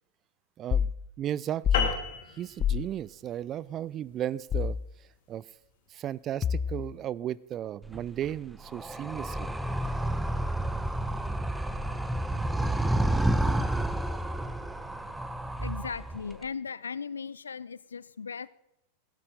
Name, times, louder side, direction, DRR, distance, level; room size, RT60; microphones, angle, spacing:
voice 1, 0.6-0.9 1.2-1.9 2.3-4.8 5.3-5.5 5.9-9.5, right 11 dB, 30° right, 21 dB, 0.3 m, -35 dB
sound 1, 0.7-1.0 1.6-1.9 2.6-2.9 4.5-4.8 6.4-6.9, left 8 dB, 25° left, 0.6 m, -27 dB
sound 2, 1.7-6.5, left 6 dB, 55° left, 2.3 m, -36 dB
Animal, 7.8-16.4, right 1 dB, 5° right, 0.8 m, -30 dB
voice 2, 15.6-18.5, left 6 dB, 70° left, 20 dB, 0.4 m, -37 dB
15.0 x 13.0 x 4.0 m, 0.83 s
figure-of-eight pair, 90°, 0 cm